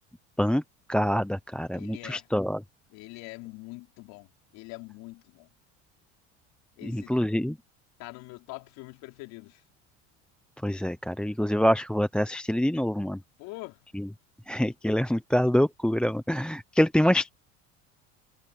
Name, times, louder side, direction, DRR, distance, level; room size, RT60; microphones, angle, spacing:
voice 1, 0.9-2.6 6.8-7.5 10.6-13.2 13.9-14.1 14.5-17.3, equal, 5° left, 0.9 m, -25 dB
voice 2, 1.7-2.3 2.9-5.5 6.8-7.2 8.0-9.6 13.4-13.8, left 24 dB, 75° left, 4.3 m, -44 dB
supercardioid pair, 95°, 35 cm